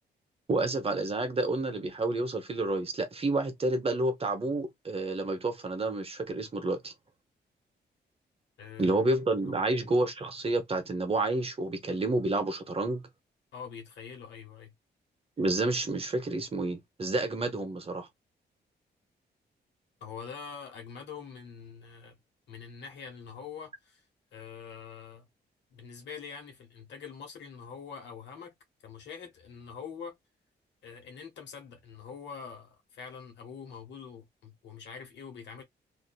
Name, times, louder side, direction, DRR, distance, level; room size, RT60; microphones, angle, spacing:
voice 1, 0.5-6.9 8.8-13.0 15.4-18.1, right 2 dB, 35° right, 0.8 m, -29 dB
voice 2, 8.6-9.1 9.4-9.6 13.5-14.7 20.0-22.2 22.5-24.0 24.3-25.3 25.7-28.5 28.8-30.2 30.8-35.6, left 6 dB, 85° left, 1.2 m, -44 dB
2.7 x 2.5 x 2.2 m
cardioid pair, 80°, 18 cm